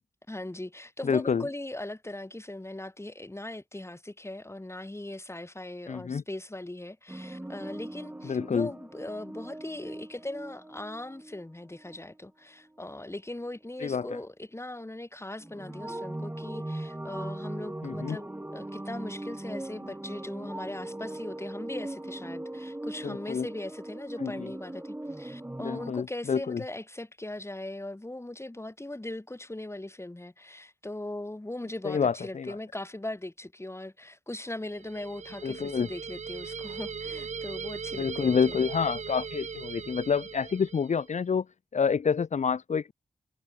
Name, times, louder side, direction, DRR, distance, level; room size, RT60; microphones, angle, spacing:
voice 1, 0.3-38.6, left 1 dB, 20° left, 4.5 m, -39 dB
voice 2, 1.0-1.5 5.9-6.2 8.2-8.7 13.8-14.2 17.8-18.2 23.0-23.5 24.2-24.5 25.6-26.6 31.8-32.6 35.4-35.9 38.0-41.5 41.7-42.9, left 6 dB, 65° left, 0.9 m, -28 dB
sound 1, 7.1-11.4 11.7-12.0 12.9-13.0 15.4-25.9, right 1 dB, 15° right, 1.4 m, -39 dB
sound 2, 34.7-41.1, right 6 dB, 60° right, 1.0 m, -39 dB
cardioid pair, 45°, 13 cm